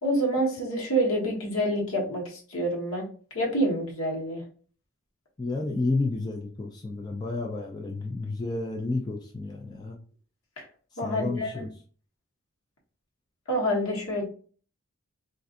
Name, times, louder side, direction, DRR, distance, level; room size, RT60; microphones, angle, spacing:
voice 1, 0.0-3.1 3.3-4.4 10.6-10.7 11.0-11.7 13.5-14.2, right 1 dB, 75° left, -2 dB, 1.2 m, -27 dB
voice 2, 5.4-10.0 10.9-11.7, left 3 dB, 20° left, 1 dB, 0.3 m, -31 dB
3.8 x 2.5 x 2.4 m, 0.42 s
head